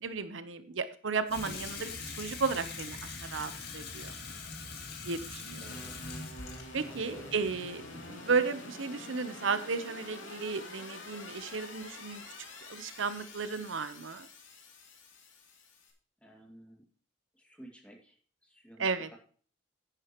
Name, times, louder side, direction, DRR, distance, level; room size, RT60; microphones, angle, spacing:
voice 1, 0.0-4.1 5.0-5.7 6.7-12.2 12.7-14.3 18.8-19.1, right 5 dB, 80° right, 12 dB, 0.8 m, -34 dB
Water tap faucet / Sink (filling or washing), 1.3-8.3, left 4 dB, 55° left, 2.2 m, -43 dB
sound 1, 5.6-15.9, left 2 dB, 75° left, 2.9 m, -47 dB
voice 2, 5.6-6.0 6.9-7.3 16.2-16.9 17.3-19.2, right 1 dB, 5° left, 0 dB, 2.3 m, -54 dB
11.0 x 9.7 x 3.0 m, 0.43 s
head